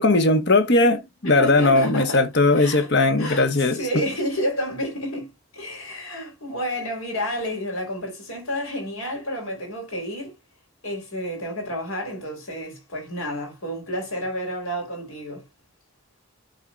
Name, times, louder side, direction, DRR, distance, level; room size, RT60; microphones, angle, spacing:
voice 1, 0.0-3.8, left 2 dB, 50° left, 1.2 m, -19 dB
voice 2, 1.4-2.3 2.6-2.9 3.2-3.5 3.7-10.4 10.8-15.4, equal, 70° left, 3.8 m, -30 dB
12.0 x 4.0 x 2.4 m
head